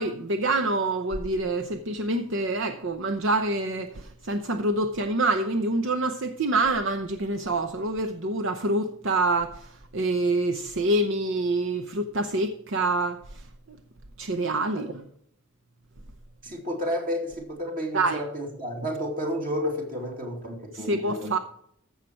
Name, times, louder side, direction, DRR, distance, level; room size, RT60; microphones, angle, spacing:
voice 1, 0.0-13.8 14.2-15.0 17.9-18.2 20.7-21.4, right 2 dB, 65° right, 0.8 m, -26 dB
voice 2, 16.4-21.3, equal, 40° right, 2.5 m, -31 dB
15.0 x 6.4 x 4.5 m
head